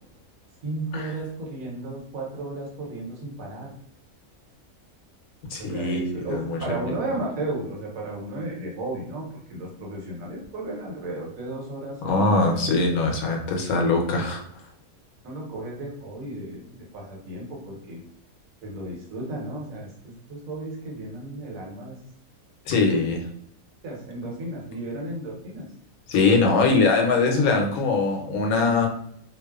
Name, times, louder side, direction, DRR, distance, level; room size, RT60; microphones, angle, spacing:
voice 1, 0.6-3.7 5.6-12.6 15.2-18.0 18.6-22.0 23.8-25.7, right 2 dB, 70° right, -2 dB, 1.3 m, -34 dB
voice 2, 5.5-6.8 12.0-14.4 22.7-23.2 26.1-28.9, left 3 dB, 85° left, 1 dB, 1.1 m, -22 dB
2.9 x 2.0 x 2.3 m, 0.66 s
omnidirectional pair, 1.5 m